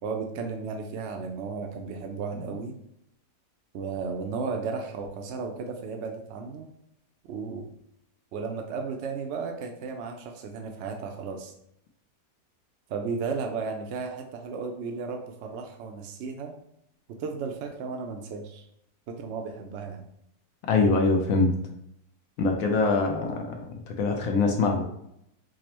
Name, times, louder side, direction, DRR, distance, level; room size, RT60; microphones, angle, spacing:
voice 1, 0.0-2.8 3.7-6.7 7.3-7.7 8.3-11.5 12.9-16.5 17.1-18.7 19.1-20.0, right 5 dB, 75° right, 3 dB, 0.6 m, -34 dB
voice 2, 20.7-21.5 22.4-23.5 24.0-24.8, left 3 dB, 70° left, 2 dB, 0.9 m, -23 dB
5.1 x 2.0 x 2.9 m, 0.77 s
omnidirectional pair, 1.7 m